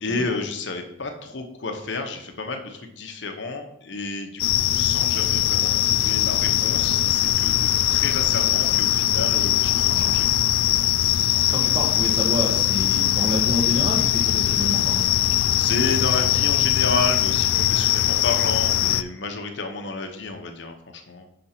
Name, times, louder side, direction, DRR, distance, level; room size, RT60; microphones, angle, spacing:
voice 1, 0.0-10.8 15.6-21.3, left 3 dB, 60° left, 4 dB, 0.9 m, -31 dB
sound 1, 4.4-19.0, left 13 dB, 90° left, 0.3 m, -21 dB
voice 2, 11.0-15.1, equal, 25° right, 0 dB, 1.2 m, -28 dB
5.8 x 5.2 x 4.3 m, 0.77 s
head